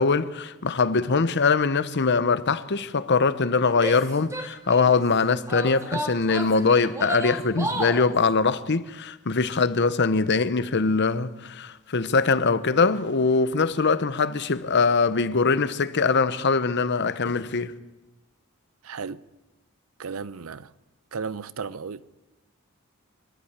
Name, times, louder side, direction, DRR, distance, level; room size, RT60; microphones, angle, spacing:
voice 1, 0.0-17.7, left 4 dB, 55° left, 0.9 m, -22 dB
Female speech woman speaking / Yell, 3.7-5.0 5.5-8.1, right 1 dB, 15° right, 1.6 m, -32 dB
voice 2, 18.8-19.2 20.0-20.7 21.1-22.1, right 5 dB, 85° right, 0.7 m, -34 dB
25.0 x 12.0 x 8.8 m
head